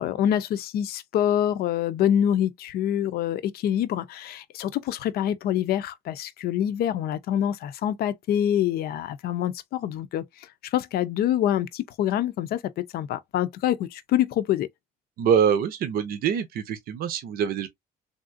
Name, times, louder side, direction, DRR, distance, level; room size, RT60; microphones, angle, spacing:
voice 1, 0.0-14.7, left 10 dB, 65° left, 0.5 m, -26 dB
voice 2, 15.2-17.7, right 8 dB, 60° right, 0.6 m, -24 dB
3.5 x 2.5 x 2.4 m
cardioid pair, 110°, 17 cm